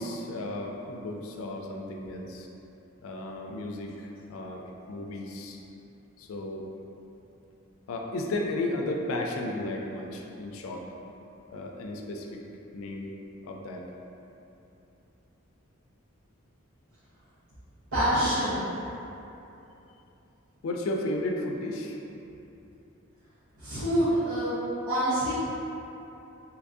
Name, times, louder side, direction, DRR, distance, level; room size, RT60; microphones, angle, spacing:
voice 1, 0.0-2.5 3.0-5.6 6.2-6.6 7.9-10.8 11.5-12.4 12.7-13.1 13.4-13.9 20.6-22.0, left 1 dB, 75° left, 1 dB, 0.4 m, -34 dB
voice 2, 17.9-18.6 23.6-24.6 24.9-25.3, equal, 90° right, -15 dB, 0.9 m, -26 dB
2.9 x 2.5 x 3.5 m, 2.9 s
head